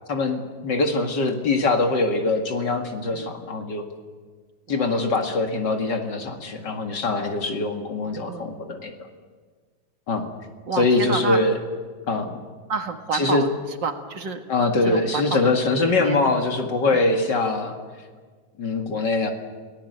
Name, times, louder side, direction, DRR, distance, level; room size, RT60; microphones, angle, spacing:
voice 1, 0.1-3.8 4.7-8.9 10.1-10.3 10.7-11.6 12.1-12.4 13.1-13.4 14.5-17.8 18.6-19.3, left 3 dB, 65° left, 4 dB, 2.7 m, -23 dB
voice 2, 4.7-5.0 8.2-8.6 10.7-11.4 12.7-13.5 13.8-14.4 14.8-15.5 15.8-16.2 16.9-17.1, right 5 dB, 70° right, 6 dB, 2.4 m, -30 dB
29.0 x 18.0 x 8.0 m, 1.5 s
omnidirectional pair, 2.1 m